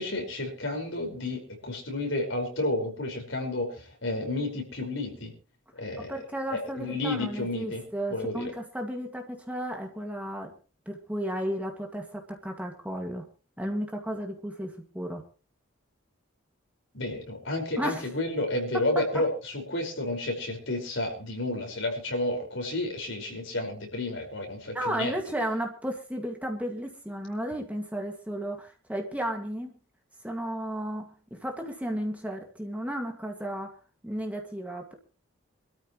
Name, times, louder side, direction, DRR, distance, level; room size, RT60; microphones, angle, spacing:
voice 1, 0.0-5.3 5.8-6.2 6.5-7.8 8.1-8.5 16.9-25.1, left 2 dB, 70° left, 2 dB, 5.2 m, -31 dB
voice 2, 6.0-10.5 10.9-13.3 13.6-15.2 17.8-18.1 24.7-29.7 30.2-33.7 34.0-34.9, right 1 dB, 5° right, 2 dB, 2.0 m, -33 dB
24.5 x 13.5 x 3.1 m, 0.35 s
head